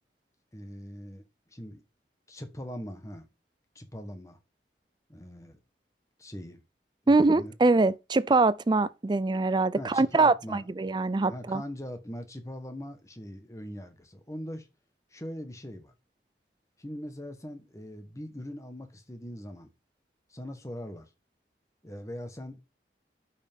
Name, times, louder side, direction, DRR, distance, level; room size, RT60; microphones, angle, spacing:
voice 1, 0.5-1.8 2.3-3.3 3.7-4.4 5.1-5.6 6.2-6.6 7.0-7.5 9.8-10.7 11.3-14.7 15.1-15.9 16.8-19.7 20.3-21.1 21.8-22.6, equal, 20° left, 1.3 m, -41 dB
voice 2, 7.1-11.6, right 3 dB, 25° right, 0.4 m, -23 dB
11.5 x 5.7 x 3.6 m
head